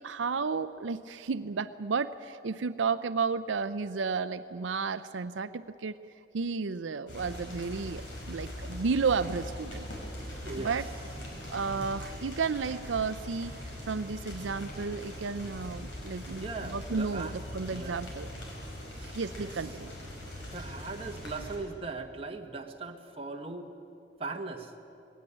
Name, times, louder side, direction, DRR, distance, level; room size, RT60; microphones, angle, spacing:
voice 1, 0.0-6.0 6.3-9.8 10.6-10.8 11.5-13.5 13.9-18.3 19.1-19.9, right 5 dB, 85° right, 12 dB, 0.5 m, -32 dB
sound 1, 7.1-21.6, left 1 dB, 80° left, 5.3 m, -41 dB
voice 2, 10.4-10.8 16.3-17.4 17.7-18.0 19.0-19.6 20.5-23.7 24.2-24.7, right 3 dB, 30° right, 4 dB, 1.4 m, -39 dB
20.5 x 17.0 x 9.9 m, 2.7 s
head